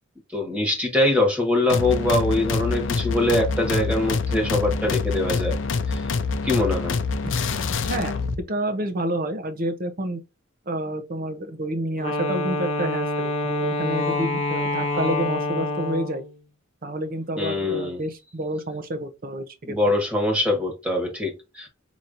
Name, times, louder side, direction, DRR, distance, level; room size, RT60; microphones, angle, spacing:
voice 1, 0.3-5.6 5.9-6.1 6.4-7.0 17.4-18.0 19.7-21.7, left 2 dB, 5° right, 1.4 m, -23 dB
sound 1, 1.7-8.4, left 4 dB, 65° left, 0.6 m, -26 dB
voice 2, 8.5-10.2 10.7-16.2 16.8-19.8, right 1 dB, 45° right, 0.7 m, -29 dB
Wind instrument woodwind instrument, 12.0-16.3, left 2 dB, 30° left, 1.0 m, -26 dB
5.6 x 3.0 x 2.6 m
head